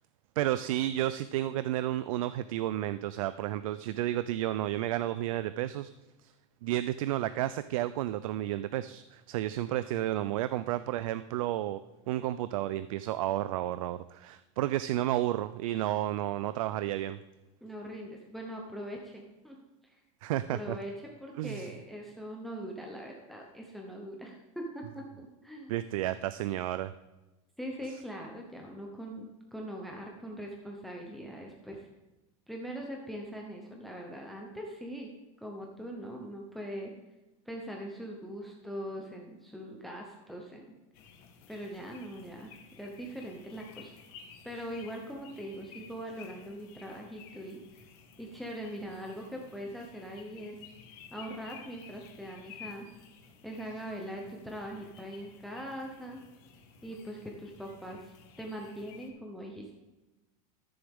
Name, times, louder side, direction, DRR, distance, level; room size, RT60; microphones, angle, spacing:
voice 1, 0.4-5.9 6.6-11.8 12.1-17.2 20.2-20.8 21.4-21.7 25.7-26.9, right 13 dB, 85° right, 13 dB, 0.4 m, -31 dB
voice 2, 17.6-19.6 19.8-20.0 20.5-25.0 25.4-25.7 27.6-31.9 32.5-35.1 35.4-36.9 37.5-40.7 41.5-42.5 42.8-43.9 44.4-47.6 48.2-50.6 51.1-52.9 53.4-56.2 56.8-59.8, equal, ahead, 0 dB, 0.7 m, -41 dB
sound 1, 40.9-59.1, left 6 dB, 45° left, 1.4 m, -54 dB
13.0 x 7.0 x 3.6 m, 1.1 s
supercardioid pair, 175°, 17 cm